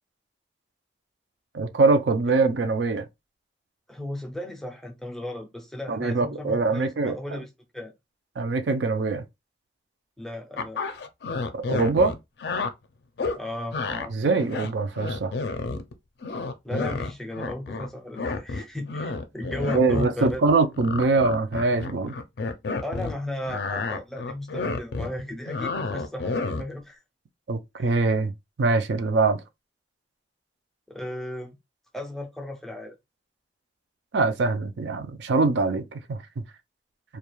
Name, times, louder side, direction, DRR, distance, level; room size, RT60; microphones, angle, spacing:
voice 1, 1.5-3.0 5.9-7.4 8.4-9.2 11.7-12.1 14.1-15.3 19.7-22.1 27.5-28.3 28.6-29.4 34.1-36.2, right 3 dB, 85° right, 0.4 m, -23 dB
voice 2, 3.9-7.5 7.7-7.9 10.2-10.8 13.3-14.5 16.6-20.4 22.8-27.0 27.8-27.9 30.9-31.6 31.9-33.0, left 1 dB, ahead, 0.4 m, -35 dB
sound 1, 10.6-12.7 13.2-13.4 13.7-14.1 14.4-15.9 16.2-17.9 18.2-23.1 23.4-26.8, left 3 dB, 70° left, 0.4 m, -30 dB
2.3 x 2.2 x 3.0 m
head